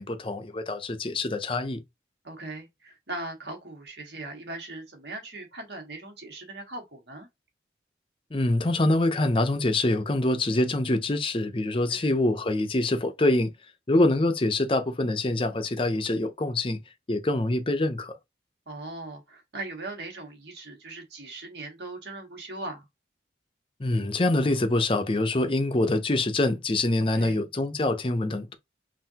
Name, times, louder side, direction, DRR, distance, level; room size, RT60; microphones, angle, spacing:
voice 1, 0.0-1.8 8.3-13.5 13.9-16.8 17.1-18.1 23.8-28.6, left 2 dB, 30° left, 0.6 m, -25 dB
voice 2, 2.2-7.3 11.9-12.1 18.7-22.9 27.1-27.4, right 2 dB, 70° right, 1.7 m, -39 dB
5.6 x 2.6 x 2.8 m
head